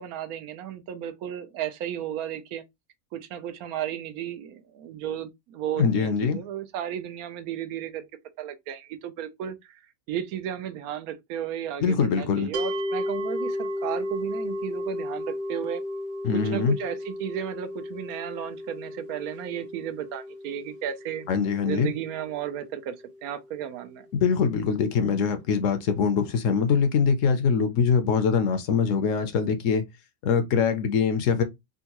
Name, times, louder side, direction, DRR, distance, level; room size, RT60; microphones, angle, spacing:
voice 1, 0.0-2.6 3.1-8.0 8.4-9.8 10.1-15.8 16.3-21.3 21.7-22.9 23.2-24.1, right 10 dB, 90° right, 1.1 m, -34 dB
voice 2, 5.8-6.4 11.8-12.5 16.2-16.8 21.3-21.9 24.1-29.9 30.2-31.4, left 6 dB, 70° left, 0.9 m, -23 dB
sound 1, 12.5-23.7, left 1 dB, 60° right, 0.6 m, -34 dB
3.6 x 2.2 x 2.9 m
omnidirectional pair, 1.5 m